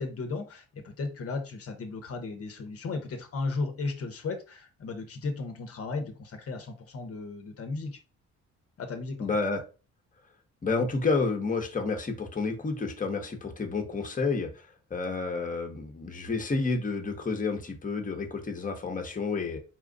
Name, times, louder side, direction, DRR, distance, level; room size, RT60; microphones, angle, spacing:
voice 1, 0.0-8.0 8.8-9.3, left 3 dB, 50° left, 1.0 m, -35 dB
voice 2, 9.2-9.6 10.6-19.6, left 4 dB, 25° left, 1.1 m, -30 dB
4.4 x 2.4 x 3.8 m
cardioid pair, 90°, 30 cm